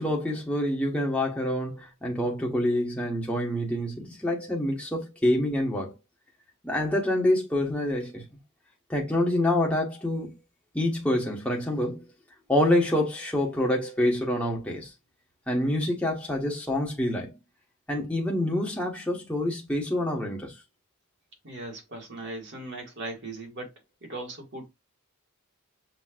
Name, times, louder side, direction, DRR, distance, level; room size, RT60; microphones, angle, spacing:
voice 1, 0.0-5.9 6.6-8.2 8.9-10.3 10.7-12.0 12.5-14.9 15.5-17.3 17.9-20.5, left 1 dB, 5° left, 1.2 m, -26 dB
voice 2, 21.4-23.7 24.0-24.7, right 2 dB, 50° right, 1.9 m, -38 dB
6.0 x 3.0 x 2.4 m
head